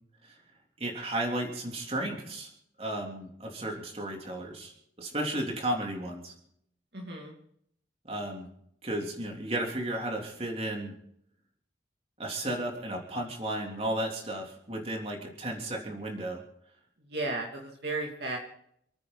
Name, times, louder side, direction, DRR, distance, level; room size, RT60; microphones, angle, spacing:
voice 1, 0.8-2.5 2.8-6.3 8.0-8.5 8.8-10.9 12.2-16.4, right 1 dB, 30° right, 1 dB, 3.4 m, -34 dB
voice 2, 6.9-7.3 17.1-18.4, right 2 dB, 55° right, 0 dB, 2.8 m, -34 dB
29.0 x 9.7 x 4.1 m, 0.71 s
head